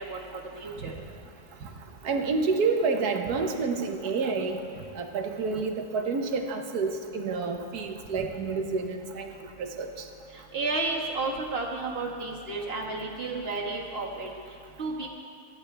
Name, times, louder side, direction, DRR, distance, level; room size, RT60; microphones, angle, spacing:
voice 1, 0.6-0.9 10.3-14.3 14.8-15.1, right 3 dB, 40° right, -2 dB, 1.9 m, -32 dB
voice 2, 2.0-4.6 4.9-9.3 9.6-9.9, right 4 dB, 85° right, 4 dB, 1.5 m, -29 dB
20.0 x 14.0 x 3.4 m, 2.3 s
omnidirectional pair, 1.6 m